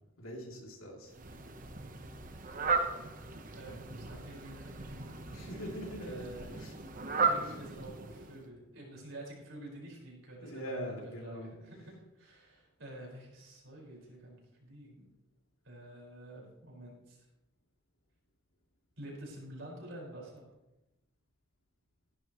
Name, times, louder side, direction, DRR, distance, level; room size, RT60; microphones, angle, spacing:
voice 1, 0.2-1.1 5.3-6.7 7.4-7.6 10.4-11.5, equal, 80° left, -1 dB, 3.1 m, -42 dB
Fowl, 1.1-8.5, right 4 dB, 40° right, 1.0 m, -36 dB
voice 2, 3.5-5.7 6.0-6.5 7.3-15.1 15.6-17.2 19.0-20.5, right 1 dB, 65° right, -2 dB, 5.2 m, -49 dB
17.5 x 11.0 x 3.1 m, 0.98 s
head